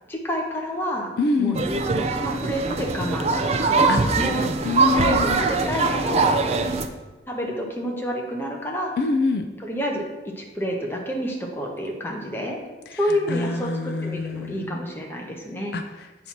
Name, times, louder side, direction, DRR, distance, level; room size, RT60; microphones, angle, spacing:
voice 1, 0.1-1.1 1.4-1.6 2.0-3.8 4.2-4.5 4.8-6.8 7.3-8.9 9.6-10.0 10.4-12.6 13.0-15.8, equal, 15° left, 0 dB, 0.9 m, -29 dB
voice 2, 1.2-1.7 3.9-4.1 4.6-5.4 9.0-9.5 12.9-13.0 13.3-14.8 15.7-16.3, left 3 dB, 60° left, 7 dB, 0.4 m, -26 dB
sound 1, 1.5-6.9, right 3 dB, 35° right, 0.4 m, -22 dB
7.9 x 2.8 x 5.9 m, 1.2 s
head